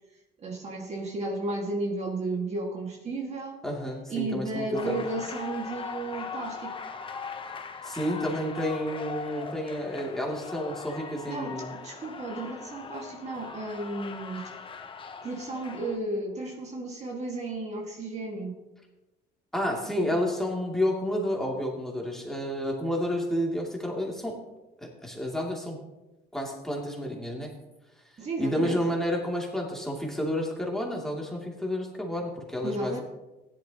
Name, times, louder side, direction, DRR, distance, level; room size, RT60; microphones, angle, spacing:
voice 1, 0.4-3.6 4.1-6.7 11.3-14.5 15.2-18.6 28.2-28.8 32.6-33.0, right 2 dB, 40° right, 0 dB, 2.0 m, -33 dB
voice 2, 3.6-5.1 7.8-11.7 19.5-24.4 24.8-25.8 26.3-27.5 28.4-33.0, equal, ahead, -2 dB, 2.7 m, -30 dB
sound 1, 4.7-16.0, left 5 dB, 30° left, 0.9 m, -40 dB
16.0 x 11.0 x 3.0 m, 1.0 s
cardioid pair, 110°, 17 cm